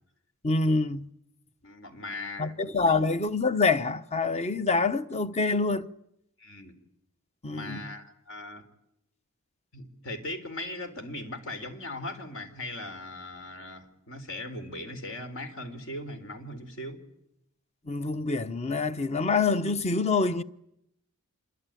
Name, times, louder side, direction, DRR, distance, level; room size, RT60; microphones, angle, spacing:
voice 1, 0.4-1.1 2.4-5.9 7.4-7.8 17.9-20.4, left 3 dB, 30° left, 1.0 m, -26 dB
voice 2, 1.6-3.0 6.4-6.7 7.5-8.6 9.7-17.0, left 1 dB, 60° left, 4.0 m, -39 dB
27.0 x 24.0 x 9.2 m
head